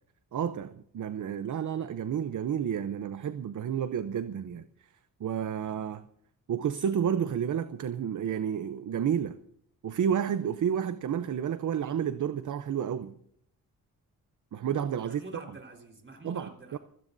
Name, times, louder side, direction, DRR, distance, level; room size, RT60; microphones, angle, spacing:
voice 1, 0.3-4.6 5.2-6.1 6.5-9.4 9.8-13.1 14.5-15.2 16.2-16.8, right 8 dB, 55° right, 0.7 m, -30 dB
voice 2, 15.0-16.8, right 2 dB, 35° right, 4.3 m, -47 dB
26.5 x 17.0 x 2.7 m
cardioid pair, 105°, 36 cm